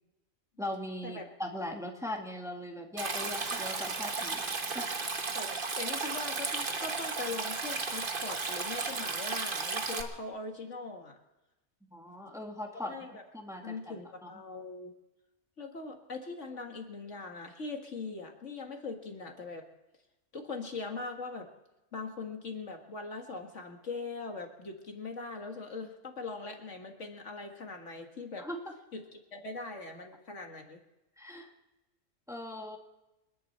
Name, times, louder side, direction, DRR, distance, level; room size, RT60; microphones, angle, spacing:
voice 1, 0.6-4.9 11.9-12.9 13.3-14.0 14.2-14.3 28.4-28.7 31.2-31.5 32.3-32.8, left 1 dB, ahead, 1 dB, 2.0 m, -40 dB
Stream, 3.0-10.0, right 4 dB, 45° right, 1.4 m, -34 dB
voice 2, 5.8-11.2 12.8-13.2 13.6-14.9 15.6-19.7 20.3-21.5 21.9-28.5 28.9-30.8, left 3 dB, 65° left, 3 dB, 2.1 m, -41 dB
29.0 x 11.0 x 4.4 m, 0.98 s
omnidirectional pair, 1.4 m